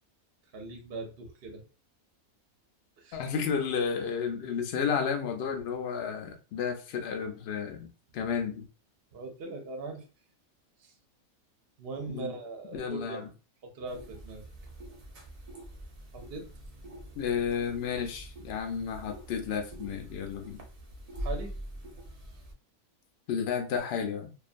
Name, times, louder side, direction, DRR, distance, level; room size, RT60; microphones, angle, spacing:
voice 1, 0.5-1.6 3.0-3.3 9.1-10.0 10.8-10.9 11.8-13.3 13.6-14.4 16.1-16.5 21.2-21.5, right 3 dB, 55° right, 3 dB, 0.7 m, -40 dB
voice 2, 3.1-7.9 8.1-8.6 12.1-12.3 12.7-13.2 17.2-20.6 23.3-24.3, left 6 dB, 65° left, 3 dB, 0.6 m, -32 dB
sound 1, 13.8-22.5, right 1 dB, 75° right, 0.3 m, -44 dB
2.4 x 2.3 x 2.5 m, 0.33 s
omnidirectional pair, 1.5 m